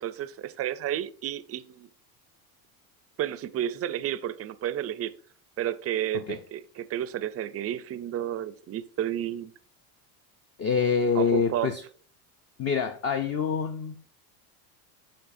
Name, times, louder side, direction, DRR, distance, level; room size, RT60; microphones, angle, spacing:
voice 1, 0.0-1.9 3.2-5.1 5.6-9.5 11.1-11.7, right 11 dB, 30° right, 15 dB, 0.4 m, -31 dB
voice 2, 10.6-11.8 12.6-13.9, left 6 dB, 30° left, 7 dB, 0.5 m, -26 dB
12.0 x 4.1 x 2.6 m, 0.43 s
supercardioid pair, 100°, 50 cm